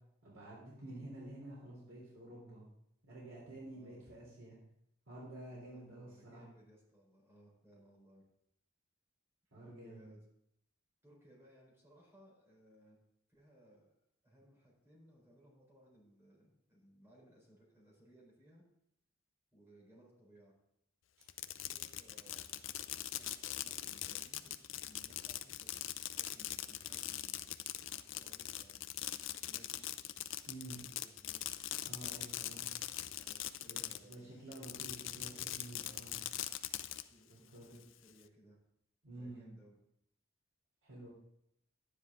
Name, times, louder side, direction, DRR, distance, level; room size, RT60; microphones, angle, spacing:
voice 1, 0.2-2.6 3.0-4.6 5.1-6.4 9.5-10.1 30.4-30.8 31.8-32.6 33.7-36.1 37.3-37.7 39.0-39.5 40.8-41.1, right 1 dB, 75° right, -5 dB, 3.4 m, -50 dB
voice 2, 3.7-4.0 5.5-8.3 9.8-10.2 11.0-13.0 13.3-13.9 14.2-18.6 19.5-20.6 21.6-22.6 23.1-28.8 29.3-29.9 30.7-31.6 33.1-34.4 35.1-35.5 35.7-36.1 37.1-38.6 39.1-39.8, equal, 10° right, -3 dB, 4.0 m, -63 dB
Fireworks, 21.2-34.1 34.5-37.0, left 13 dB, 65° left, 0.5 m, -42 dB
11.5 x 9.9 x 3.6 m, 0.77 s
head